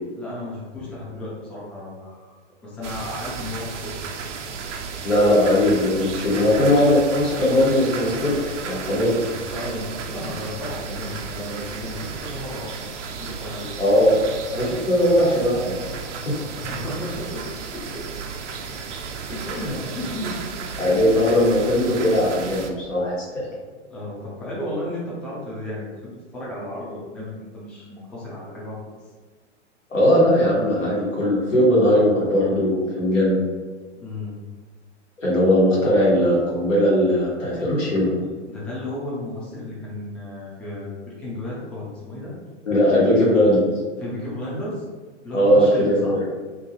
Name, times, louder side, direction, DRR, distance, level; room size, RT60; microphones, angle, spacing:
voice 1, 0.2-2.3 2.6-4.0 9.5-13.7 16.5-17.4 17.7-18.0 19.3-20.9 23.9-29.1 34.0-34.4 38.5-42.3 42.9-43.5 44.0-44.8 45.2-46.2, left 1 dB, 5° left, -6 dB, 0.4 m, -34 dB
sound 1, 2.8-22.7, right 5 dB, 70° right, 0.5 m, -34 dB
voice 2, 5.0-8.4 8.7-9.1 13.8-14.1 14.5-16.0 16.2-16.3 19.5-19.7 20.8-23.5 29.9-33.4 35.2-38.1 42.6-43.6 45.3-46.2, left 1 dB, 90° left, -7 dB, 1.4 m, -19 dB
2.7 x 2.6 x 2.8 m, 1.4 s
figure-of-eight pair, 105°, 36 cm